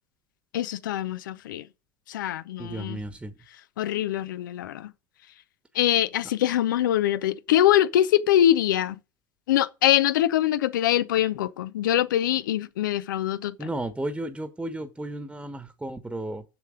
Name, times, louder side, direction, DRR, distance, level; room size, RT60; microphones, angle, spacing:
voice 1, 0.5-1.6 2.1-3.0 3.8-4.9 5.7-9.0 9.5-13.7, left 12 dB, 75° left, 0.7 m, -23 dB
voice 2, 2.6-3.3 13.6-16.4, right 1 dB, 10° right, 1.2 m, -33 dB
7.2 x 6.8 x 5.1 m
hypercardioid pair, 80°, 11 cm